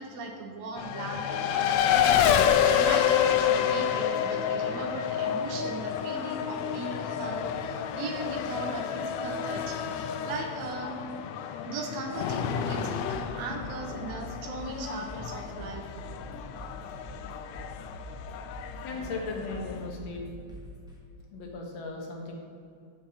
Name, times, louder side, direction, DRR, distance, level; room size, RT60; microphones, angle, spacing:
voice 1, 0.0-11.0 11.6-15.9, right 3 dB, 70° right, 3 dB, 2.2 m, -38 dB
Race car auto racing, 0.8-19.9, left 9 dB, 80° left, 1.7 m, -29 dB
sound 1, 13.1-21.0, equal, ahead, 1.0 m, -45 dB
voice 2, 18.8-20.2 21.3-22.3, left 3 dB, 65° left, 0 dB, 2.5 m, -37 dB
7.4 x 7.1 x 6.5 m, 2.4 s
omnidirectional pair, 3.4 m